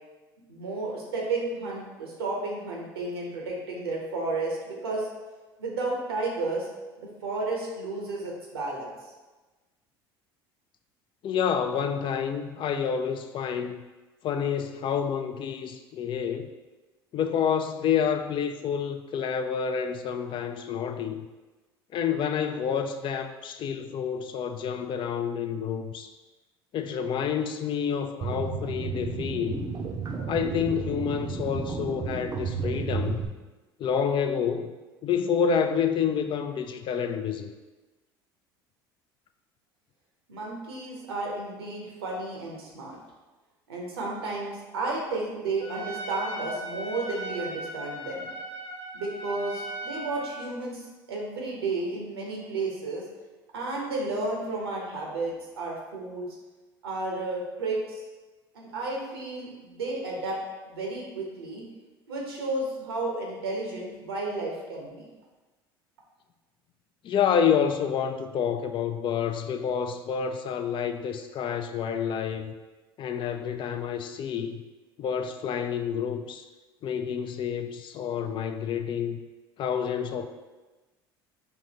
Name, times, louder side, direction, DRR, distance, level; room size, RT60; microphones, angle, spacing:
voice 1, 0.5-5.1 5.6-6.7 7.0-8.9 40.3-43.0 43.7-48.3 48.9-50.8 51.1-53.0 53.5-56.2 56.8-58.0 58.5-60.4 60.7-61.6 62.1-65.1, right 2 dB, 90° right, -2 dB, 0.9 m, -32 dB
voice 2, 11.2-13.8 14.2-16.5 17.1-21.3 21.9-26.1 26.7-29.7 30.3-33.2 33.8-34.7 35.0-37.5 67.0-72.5 73.0-74.6 75.0-76.5 76.8-79.2 79.6-80.3, left 7 dB, 40° left, 8 dB, 0.3 m, -28 dB
sound 1, 28.2-33.3, right 5 dB, 30° right, 0.6 m, -32 dB
Trumpet, 45.6-50.5, right 2 dB, 85° left, 0.7 m, -38 dB
4.6 x 2.7 x 2.8 m, 1.2 s
hypercardioid pair, 70°, 13 cm